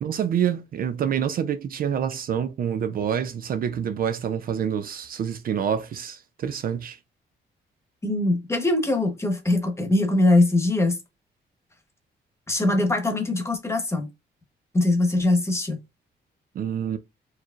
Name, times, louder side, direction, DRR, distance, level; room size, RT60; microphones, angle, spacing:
voice 1, 0.0-7.0 16.6-17.0, right 8 dB, 55° right, 0.4 m, -27 dB
voice 2, 8.0-11.0 12.5-14.1 14.7-15.8, left 2 dB, 15° left, 1.0 m, -22 dB
4.6 x 3.0 x 2.4 m
cardioid pair, 145°, 18 cm